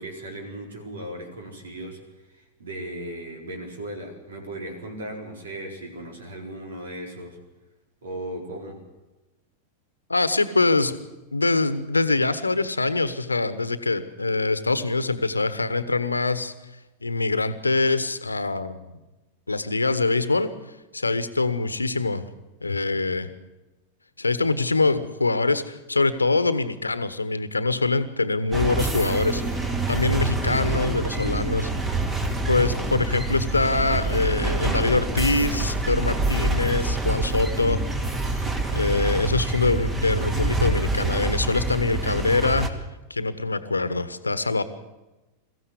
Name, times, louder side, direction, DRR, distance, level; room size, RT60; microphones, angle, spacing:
voice 1, 0.0-7.4 8.0-8.8, right 1 dB, 65° right, 2 dB, 4.6 m, -37 dB
voice 2, 10.1-10.9 11.3-16.5 17.0-18.9 19.5-20.5 20.9-22.2 22.6-23.3 24.2-29.4 29.9-31.7 32.5-37.8 38.3-38.4 38.7-42.7 43.1-44.6, left 3 dB, 80° left, 13 dB, 1.3 m, -24 dB
sound 1, 28.5-42.7, right 2 dB, 20° right, 2.4 m, -26 dB
23.0 x 15.0 x 8.4 m, 1.1 s
figure-of-eight pair, 90°, 0 cm